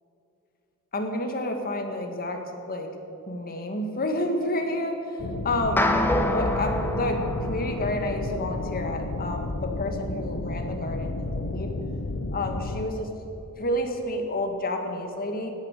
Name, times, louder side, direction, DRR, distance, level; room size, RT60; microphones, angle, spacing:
voice 1, 0.9-2.4 2.7-2.9 3.3-5.9 6.3-7.2 7.5-11.7 12.3-13.1 13.6-15.5, left 1 dB, 40° left, 4 dB, 1.8 m, -30 dB
sound 1, 5.2-12.9, left 2 dB, 60° left, 0.8 m, -32 dB
sound 2, 5.8-8.2, left 1 dB, 10° left, 1.0 m, -26 dB
17.5 x 10.5 x 6.6 m, 2.9 s
head